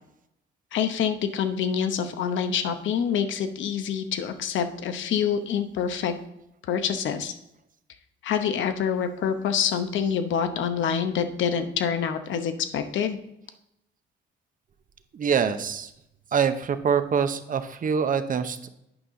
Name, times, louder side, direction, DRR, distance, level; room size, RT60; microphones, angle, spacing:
voice 1, 0.7-6.1 6.7-7.3 8.2-13.2, left 7 dB, 75° left, 9 dB, 0.8 m, -26 dB
voice 2, 15.1-15.9 16.3-18.7, right 7 dB, 45° right, 10 dB, 0.7 m, -25 dB
8.9 x 5.5 x 3.8 m, 0.82 s
cardioid pair, 90°, 20 cm